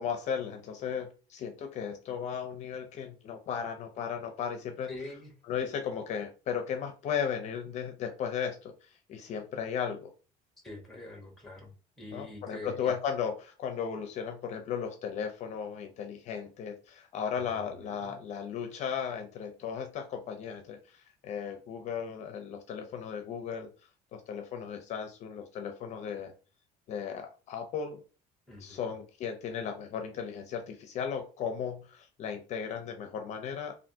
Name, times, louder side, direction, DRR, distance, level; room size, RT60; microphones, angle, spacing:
voice 1, 0.0-4.9 5.5-10.1 12.1-23.7 24.1-26.3 26.9-28.0 28.6-33.8, left 7 dB, 50° left, 0.5 m, -36 dB
voice 2, 4.9-5.3 10.6-12.9 17.4-18.2 28.5-28.9, left 2 dB, ahead, 0.9 m, -45 dB
3.3 x 2.5 x 2.7 m
cardioid pair, 155°, 16 cm